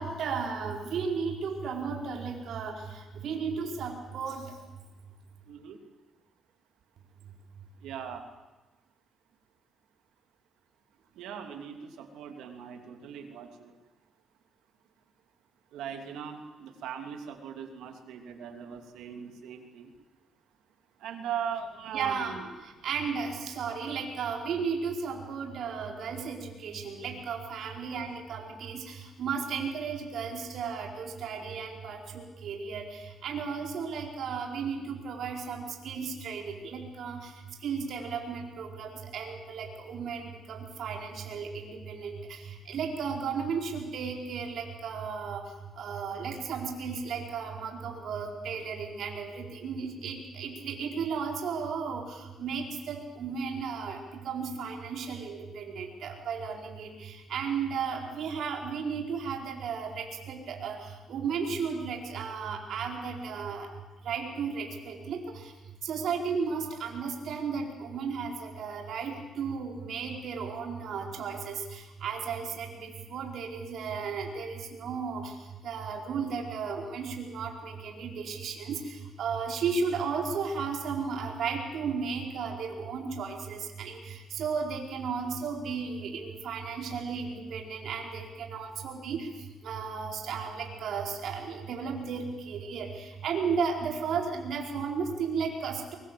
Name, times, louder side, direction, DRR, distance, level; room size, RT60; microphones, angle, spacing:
voice 1, 0.0-4.4 21.9-22.4 22.6-37.3 37.6-45.4 45.8-63.7 64.0-65.5 65.8-75.3 75.6-89.3 89.6-95.9, right 5 dB, 70° right, 1 dB, 4.6 m, -34 dB
voice 2, 5.5-5.8 7.8-8.3 11.2-13.7 15.7-19.9 21.0-22.5 27.5-27.7 28.1-28.2, right 8 dB, 85° right, 5 dB, 2.9 m, -39 dB
24.0 x 23.0 x 7.7 m, 1.1 s
cardioid pair, 90°, 0 cm